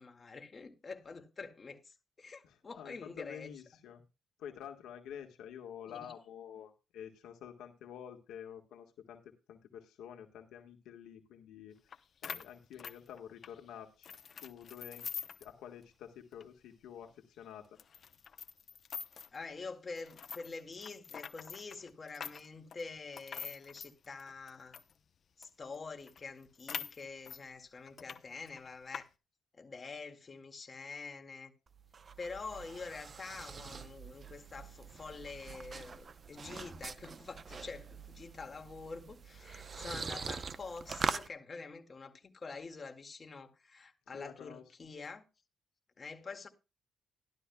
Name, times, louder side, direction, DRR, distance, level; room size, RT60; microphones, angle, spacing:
voice 1, 0.0-3.5 5.9-6.1 19.3-24.8 25.4-29.1 29.5-31.5 32.2-45.2 46.0-46.5, left 4 dB, 35° left, 2.1 m, -46 dB
voice 2, 2.4-4.0 4.4-12.0 12.2-15.0 15.4-17.6 44.1-44.6, left 9 dB, 85° left, 1.5 m, -49 dB
sound 1, 11.9-12.0 12.2-13.6 14.0-15.5 15.8-15.9 16.3-16.4 17.0-17.1 17.8-19.4 20.0-24.9 25.4-25.5 25.7-25.8 26.1-27.4 27.9-28.2 28.5-29.0, left 7 dB, 50° left, 0.8 m, -45 dB
sound 2, 31.7-41.3, right 5 dB, 40° right, 0.8 m, -43 dB
13.5 x 12.0 x 2.3 m
cardioid pair, 90°, 0 cm